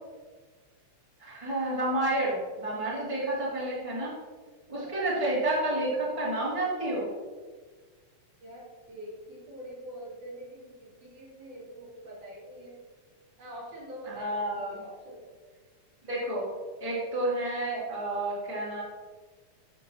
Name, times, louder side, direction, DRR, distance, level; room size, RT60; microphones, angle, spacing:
voice 1, 1.2-4.1 4.7-7.1 14.1-14.8 16.1-16.5 16.8-18.8, right 1 dB, 10° right, -7 dB, 2.4 m, -30 dB
voice 2, 4.7-5.0 8.4-12.8 13.4-15.3, right 1 dB, 75° right, -7 dB, 4.3 m, -45 dB
10.5 x 7.4 x 2.9 m, 1.4 s
omnidirectional pair, 3.6 m